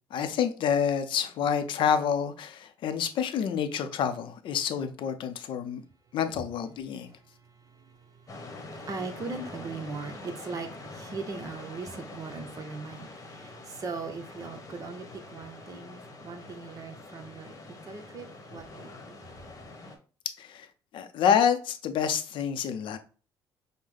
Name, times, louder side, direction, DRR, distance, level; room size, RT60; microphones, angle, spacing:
voice 1, 0.1-5.8 6.1-7.1 20.4-20.7 20.9-23.0, left 8 dB, 70° left, 0.6 m, -28 dB
voice 2, 6.9-19.2, right 4 dB, 40° right, 0.9 m, -40 dB
sound 1, 8.3-20.0, left 2 dB, 35° left, 1.0 m, -45 dB
5.4 x 2.1 x 3.3 m
cardioid pair, 105°, 9 cm